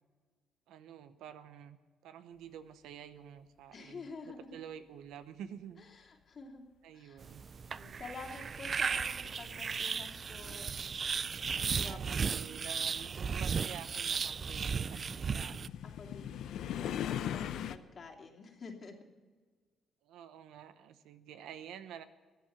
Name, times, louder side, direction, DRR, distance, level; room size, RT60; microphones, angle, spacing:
voice 1, 0.7-5.8 6.8-7.4 11.7-15.6 16.8-17.3 20.0-22.0, right 9 dB, 90° right, 11 dB, 0.9 m, -49 dB
voice 2, 3.7-4.6 5.8-6.6 6.9-7.2 7.7-10.7 11.7-12.0 15.8-18.9, left 4 dB, 50° left, 1 dB, 2.8 m, -49 dB
sound 1, 7.2-15.7, right 6 dB, 45° right, 0.4 m, -35 dB
sound 2, 11.9-17.8, left 10 dB, 80° left, 0.6 m, -40 dB
14.0 x 10.0 x 7.4 m, 1.4 s
cardioid pair, 90°, 0 cm